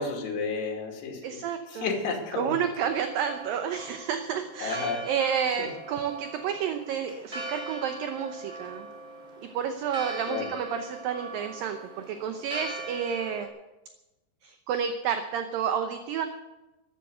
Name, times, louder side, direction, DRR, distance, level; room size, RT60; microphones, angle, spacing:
voice 1, 0.0-1.4 1.7-2.6 4.6-5.1 5.6-5.7 10.3-10.5, left 4 dB, 80° left, 2 dB, 4.6 m, -32 dB
voice 2, 1.2-1.9 2.4-8.9 9.5-11.8 12.1-13.5 14.4-16.3, right 8 dB, 70° right, 7 dB, 2.3 m, -30 dB
Church bell, 2.9-13.5, right 2 dB, 15° right, 3.0 m, -41 dB
13.5 x 12.0 x 7.8 m, 1.0 s
omnidirectional pair, 4.8 m